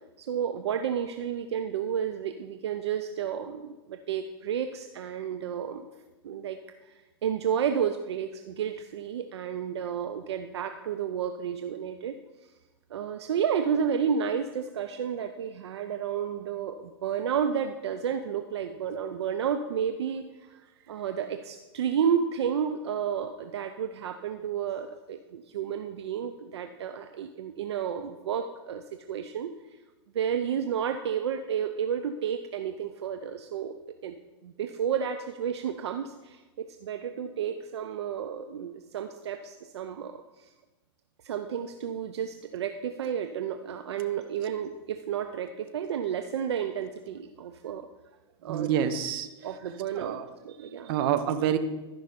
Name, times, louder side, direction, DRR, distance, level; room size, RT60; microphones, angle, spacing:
voice 1, 0.2-5.9 6.2-6.6 7.2-12.1 12.9-20.2 20.9-29.5 30.1-33.7 34.0-34.1 34.4-40.2 41.2-47.9 48.4-48.8 49.4-50.2 50.4-50.9, right 8 dB, 80° right, 7 dB, 0.6 m, -31 dB
voice 2, 48.5-49.3 49.9-50.2 50.9-51.6, right 9 dB, 60° right, 9 dB, 0.9 m, -27 dB
13.0 x 5.4 x 5.2 m, 1.1 s
hypercardioid pair, 100°, 14 cm